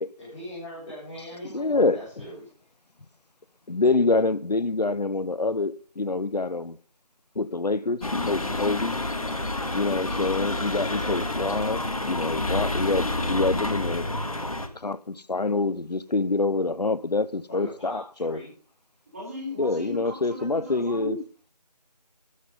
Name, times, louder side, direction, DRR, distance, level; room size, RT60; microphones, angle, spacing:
voice 1, 0.2-2.4 17.5-18.5, equal, 10° left, 4.2 m, -40 dB
voice 2, 1.4-2.0 3.7-6.8 7.4-9.0 9.7-14.1 14.7-18.4 19.6-21.2, left 3 dB, 75° left, 0.9 m, -26 dB
sound 1, 8.0-14.7, left 2 dB, 60° left, 2.2 m, -29 dB
sound 2, 8.9-12.2 12.4-13.9 14.4-14.5, right 1 dB, 85° right, 3.6 m, -49 dB
voice 3, 19.1-21.2, left 2 dB, 20° right, 5.0 m, -36 dB
13.0 x 9.0 x 5.6 m
figure-of-eight pair, 170°, 21 cm